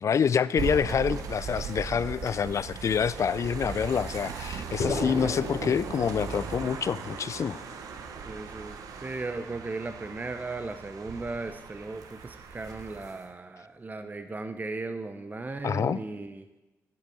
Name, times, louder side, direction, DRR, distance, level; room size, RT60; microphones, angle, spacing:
voice 1, 0.0-7.6 15.6-16.0, left 7 dB, 55° left, 18 dB, 0.4 m, -27 dB
sound 1, 0.6-13.3, right 6 dB, 80° right, 1.0 m, -38 dB
sound 2, 4.8-9.2, left 3 dB, 80° left, 2.4 m, -36 dB
voice 2, 8.3-16.5, right 3 dB, 30° right, 9 dB, 0.8 m, -36 dB
8.6 x 6.6 x 8.5 m, 1.0 s
supercardioid pair, 55°, 6 cm